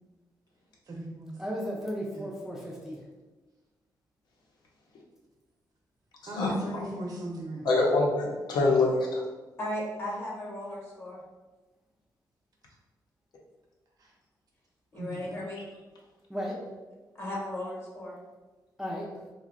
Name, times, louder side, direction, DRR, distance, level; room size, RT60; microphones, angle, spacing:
voice 1, 0.9-1.4 2.1-2.3 6.3-7.9 14.0-14.1 14.9-15.4, right 1 dB, 60° right, -1 dB, 0.7 m, -39 dB
voice 2, 1.4-3.0 16.3-16.6 18.8-19.1, equal, 5° right, -4 dB, 0.4 m, -34 dB
voice 3, 6.4-6.8 7.6-9.2, left 2 dB, 75° left, -2 dB, 0.7 m, -25 dB
voice 4, 9.6-11.2 14.9-15.6 17.2-18.2, left 1 dB, 30° left, -4 dB, 0.9 m, -36 dB
2.9 x 2.2 x 3.7 m, 1.2 s
wide cardioid pair, 165°, 7 cm